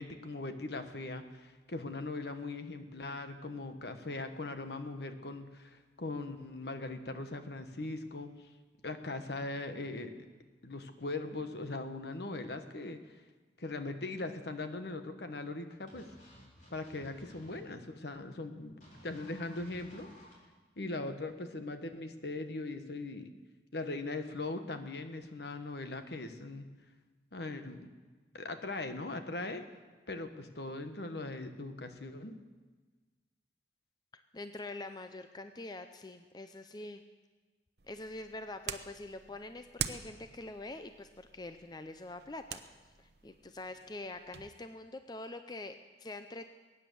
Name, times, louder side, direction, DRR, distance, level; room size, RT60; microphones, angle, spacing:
voice 1, 0.0-8.5 8.8-10.2 10.6-13.0 13.6-16.1 16.7-20.1 20.8-23.3 23.7-26.7 27.3-27.9 28.3-29.6 30.1-32.4, left 2 dB, 65° left, 8 dB, 1.2 m, -40 dB
sound 1, 15.9-17.6 18.8-20.3, equal, 45° left, 4.1 m, -56 dB
voice 2, 34.3-37.0 37.9-46.5, left 2 dB, 25° left, 8 dB, 0.5 m, -45 dB
sound 2, 37.8-44.5, right 8 dB, 65° right, 0.8 m, -45 dB
21.5 x 9.7 x 6.8 m, 1.3 s
head